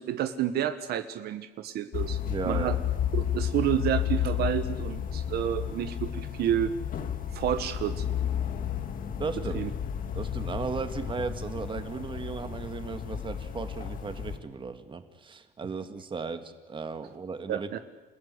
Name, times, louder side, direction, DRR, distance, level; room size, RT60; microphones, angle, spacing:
voice 1, 0.0-2.2 2.4-2.8 3.1-6.7 7.3-8.0 9.5-9.7 17.5-17.8, right 10 dB, 70° right, 9 dB, 1.3 m, -30 dB
sound 1, 1.9-14.4, left 9 dB, 55° left, 2.0 m, -32 dB
voice 2, 2.2-2.8 9.2-9.7 10.1-17.7, right 4 dB, 30° right, 8 dB, 2.0 m, -36 dB
28.5 x 15.5 x 9.7 m, 1.3 s
cardioid pair, 110°, 17 cm